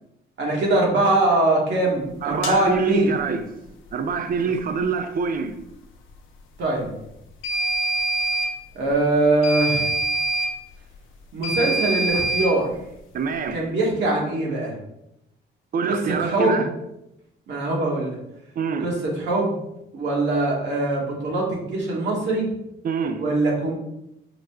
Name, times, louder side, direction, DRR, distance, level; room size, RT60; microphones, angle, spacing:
voice 1, 0.4-3.1 6.6-6.9 8.7-9.9 11.3-12.7 13.5-14.7 15.8-16.6 17.5-18.2 18.8-19.6 19.9-22.5 23.2-23.7, right 2 dB, 65° right, 1.3 m, -22 dB
voice 2, 2.2-3.5 3.9-5.6 13.1-13.7 15.7-16.7 18.6-18.9 22.8-23.2, right 5 dB, 45° right, 0.5 m, -25 dB
sound 1, 2.4-2.6 7.4-8.5 9.4-10.5 11.4-12.5, right 2 dB, 80° left, 0.6 m, -24 dB
4.8 x 2.1 x 3.5 m
cardioid pair, 90°, 20 cm